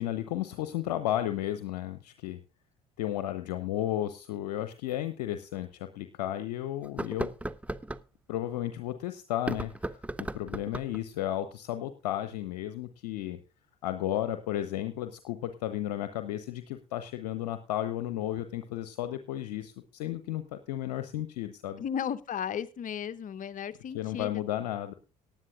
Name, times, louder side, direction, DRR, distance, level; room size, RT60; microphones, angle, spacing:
voice 1, 0.0-2.4 3.0-7.3 8.3-13.4 13.8-21.8 23.9-24.9, left 13 dB, 70° left, 10 dB, 0.8 m, -33 dB
sound 1, 4.9-5.0 5.6-5.7 6.8-8.1 9.3-11.0, right 1 dB, 5° right, 0.6 m, -36 dB
voice 2, 21.8-24.4, left 8 dB, 40° left, 14 dB, 0.9 m, -35 dB
18.5 x 10.5 x 2.4 m, 0.31 s
figure-of-eight pair, 55°, 21 cm